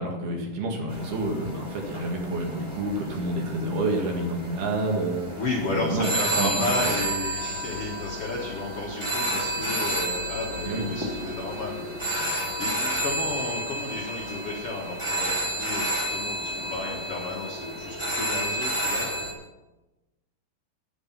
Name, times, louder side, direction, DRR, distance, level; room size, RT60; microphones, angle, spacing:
voice 1, 0.0-5.3 5.7-6.1 6.4-6.9 10.7-10.9, right 2 dB, 65° right, 1 dB, 3.6 m, -28 dB
sound 1, 0.9-19.3, right 1 dB, 10° right, 1.5 m, -31 dB
voice 2, 5.3-19.1, left 2 dB, 65° left, -2 dB, 1.5 m, -33 dB
9.8 x 9.6 x 5.8 m, 1.1 s
omnidirectional pair, 5.0 m